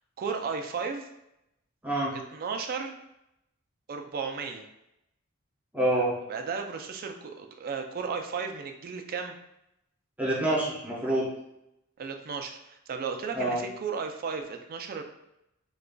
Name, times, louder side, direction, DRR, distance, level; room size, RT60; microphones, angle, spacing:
voice 1, 0.2-1.1 2.1-3.0 3.9-4.7 6.3-9.4 12.0-15.0, right 5 dB, 45° right, 5 dB, 0.3 m, -34 dB
voice 2, 1.8-2.2 5.7-6.1 10.2-11.3 13.3-13.6, right 1 dB, 5° right, -5 dB, 0.7 m, -26 dB
4.9 x 2.3 x 2.2 m, 0.84 s
head